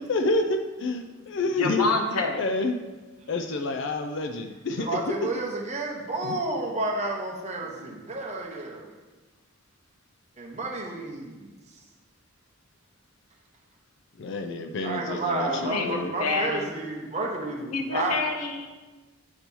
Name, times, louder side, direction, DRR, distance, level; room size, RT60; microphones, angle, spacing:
voice 1, 0.0-2.8 3.3-5.1 6.2-6.4 14.2-16.1, left 2 dB, 55° left, 6 dB, 0.4 m, -29 dB
voice 2, 1.6-2.4 7.8-7.9 15.5-16.7 17.7-18.7, left 3 dB, 85° left, 4 dB, 0.8 m, -28 dB
voice 3, 4.8-8.9 10.4-11.5 14.8-18.2, right 2 dB, 30° right, 0 dB, 0.8 m, -31 dB
8.2 x 3.0 x 5.3 m, 1.2 s
head